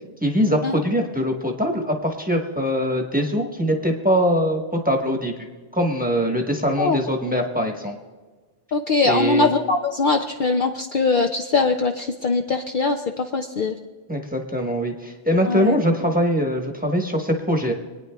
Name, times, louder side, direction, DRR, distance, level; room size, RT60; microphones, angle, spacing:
voice 1, 0.2-5.3 5.7-8.0 9.0-9.5 14.1-17.7, equal, 10° right, 1 dB, 1.1 m, -22 dB
voice 2, 8.7-13.8 15.5-15.8, left 3 dB, 55° left, 4 dB, 0.6 m, -21 dB
26.0 x 9.4 x 2.3 m, 1.4 s
omnidirectional pair, 1.2 m